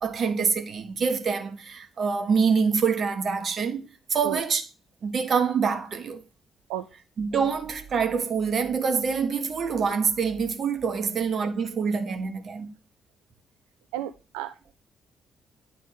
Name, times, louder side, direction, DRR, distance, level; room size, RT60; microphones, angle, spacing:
voice 1, 0.0-4.6 5.0-6.2 7.2-12.7, right 5 dB, 50° right, 1.4 m, -26 dB
voice 2, 13.9-14.7, right 12 dB, 70° right, 0.4 m, -33 dB
9.9 x 3.8 x 5.0 m
figure-of-eight pair, 40°, 0 cm